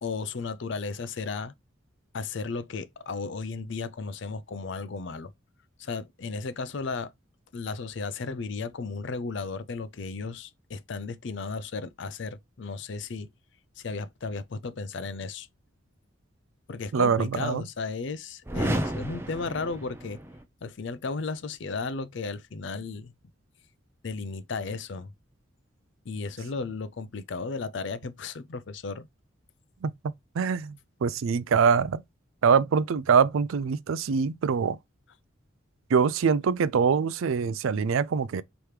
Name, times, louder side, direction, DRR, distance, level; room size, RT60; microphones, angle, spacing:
voice 1, 0.0-1.5 2.1-5.3 5.8-7.1 7.5-13.3 13.8-15.5 16.7-20.2 20.6-23.1 24.0-25.1 26.0-29.1, left 4 dB, 60° left, 0.5 m, -34 dB
voice 2, 16.9-17.6 29.8-32.0 32.4-34.8 35.9-38.4, right 6 dB, 80° right, 0.4 m, -24 dB
sound 1, 18.4-20.4, right 1 dB, 10° right, 0.5 m, -32 dB
5.0 x 3.0 x 3.1 m
head